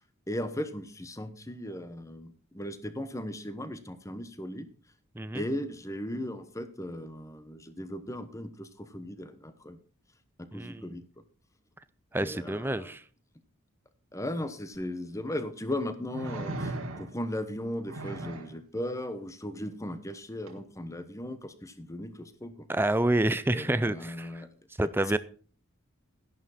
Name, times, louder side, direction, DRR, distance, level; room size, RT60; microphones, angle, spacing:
voice 1, 0.3-4.7 5.3-9.8 10.4-11.0 12.1-12.9 14.1-22.7 23.5-24.5, left 1 dB, 15° left, 11 dB, 1.0 m, -37 dB
voice 2, 10.5-11.0 12.1-13.0 22.7-24.4 24.8-25.2, right 1 dB, 10° right, 14 dB, 0.5 m, -28 dB
sound 1, 14.7-14.8 16.1-17.3 17.9-18.6 20.5-20.6, right 2 dB, 85° right, 1.8 m, -37 dB
11.5 x 11.0 x 4.2 m, 0.41 s
head